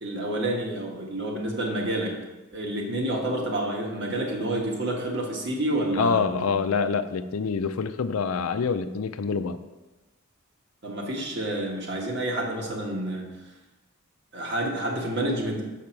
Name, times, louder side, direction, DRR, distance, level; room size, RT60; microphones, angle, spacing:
voice 1, 0.0-2.2 2.5-6.6 10.8-13.3 14.3-15.6, right 1 dB, 50° right, 0 dB, 1.4 m, -29 dB
voice 2, 5.9-9.6, left 5 dB, 85° left, 11 dB, 0.5 m, -26 dB
6.8 x 5.7 x 4.5 m, 1.1 s
head